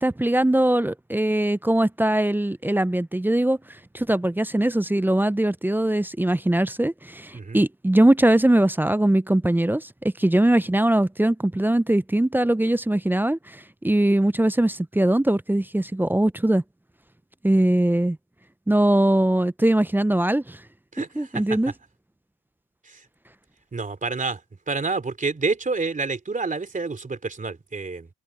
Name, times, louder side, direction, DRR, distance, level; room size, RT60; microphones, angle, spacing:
voice 1, 0.0-3.6 3.9-16.6 17.4-18.2 18.7-20.6 21.2-21.7, right 1 dB, 5° right, 0.5 m, -21 dB
voice 2, 20.9-21.4 22.8-23.0 23.7-24.4 24.7-28.1, right 4 dB, 25° right, 3.2 m, -28 dB
open air
cardioid pair, 90°, 30 cm